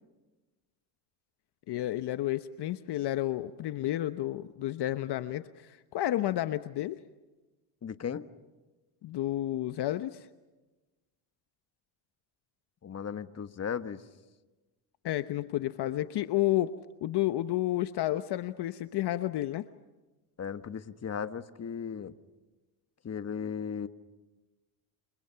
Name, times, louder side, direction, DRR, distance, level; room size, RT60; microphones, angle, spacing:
voice 1, 1.7-7.0 9.0-10.3 15.0-16.7 17.0-19.7, left 14 dB, 60° left, 11 dB, 1.0 m, -31 dB
voice 2, 7.8-8.3 12.8-14.0 20.4-22.1 23.0-23.9, left 7 dB, 35° left, 10 dB, 1.5 m, -36 dB
29.0 x 28.5 x 5.8 m, 1.2 s
supercardioid pair, 85°, 45 cm